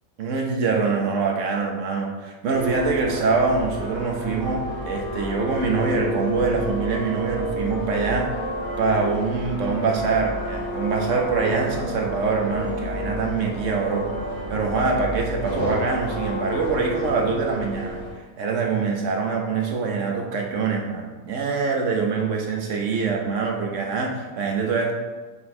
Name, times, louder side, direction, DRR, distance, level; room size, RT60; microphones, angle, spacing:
voice 1, 0.2-8.5 8.8-14.1 14.5-18.0 18.4-24.9, right 4 dB, 60° right, 0 dB, 1.2 m, -24 dB
sound 1, 2.5-18.1, equal, 35° right, 2.3 m, -30 dB
7.0 x 4.5 x 3.2 m, 1.3 s
omnidirectional pair, 1.6 m